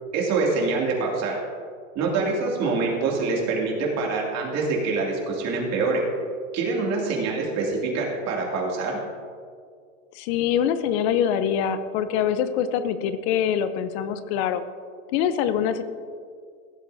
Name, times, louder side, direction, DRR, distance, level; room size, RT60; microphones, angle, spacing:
voice 1, 0.1-1.4 1.9-6.0 6.5-9.0, right 3 dB, 40° right, -2 dB, 2.6 m, -25 dB
voice 2, 10.2-14.6 15.1-15.8, left 9 dB, 55° left, 12 dB, 0.8 m, -24 dB
15.5 x 7.7 x 2.7 m, 2.1 s
hypercardioid pair, 110°, 38 cm